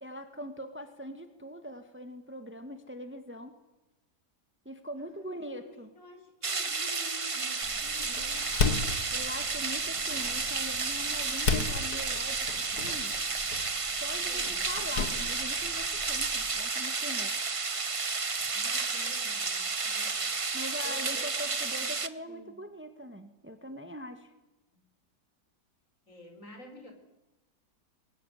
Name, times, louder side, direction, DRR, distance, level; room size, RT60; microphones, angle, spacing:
voice 1, 0.0-3.6 4.6-5.9 9.1-13.1 14.0-17.3 20.5-24.3, equal, 5° right, 8 dB, 1.6 m, -42 dB
voice 2, 5.0-8.5 14.3-14.7 18.5-20.6 20.8-22.6 24.7-24.8 26.1-26.9, left 2 dB, 50° left, 4 dB, 5.0 m, -51 dB
sound 1, 6.4-22.1, right 4 dB, 30° right, 0.7 m, -32 dB
Door, 7.6-16.6, left 4 dB, 65° left, 2.5 m, -35 dB
23.0 x 19.5 x 9.8 m, 1.0 s
omnidirectional pair, 1.8 m